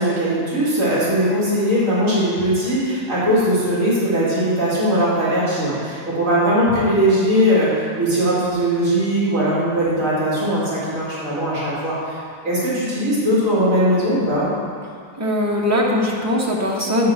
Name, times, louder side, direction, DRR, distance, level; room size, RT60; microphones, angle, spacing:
voice 1, 0.0-12.2 12.4-14.5, equal, 55° right, -9 dB, 2.7 m, -19 dB
voice 2, 15.2-17.1, left 1 dB, 15° right, -2 dB, 0.7 m, -20 dB
9.7 x 3.8 x 6.3 m, 2.3 s
omnidirectional pair, 1.6 m